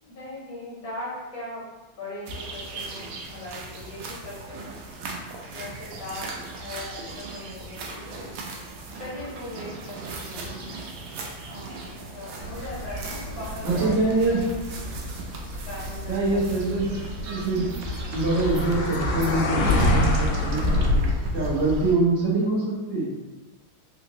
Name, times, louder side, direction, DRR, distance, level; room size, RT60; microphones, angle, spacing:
voice 1, 0.0-1.6 2.0-4.8 5.5-8.4 8.9-10.7 11.4-13.9 15.7-16.4, left 2 dB, 55° left, -7 dB, 1.7 m, -39 dB
sound 1, 2.3-21.9, equal, 90° right, 1.4 m, -31 dB
sound 2, 12.4-20.9, left 2 dB, 80° left, 1.3 m, -32 dB
voice 2, 13.6-14.4 16.1-17.6 18.1-23.1, right 2 dB, 40° right, -7 dB, 1.2 m, -25 dB
sound 3, 16.7-21.1, equal, 75° right, 1.1 m, -37 dB
3.7 x 2.5 x 3.0 m, 1.1 s
omnidirectional pair, 2.1 m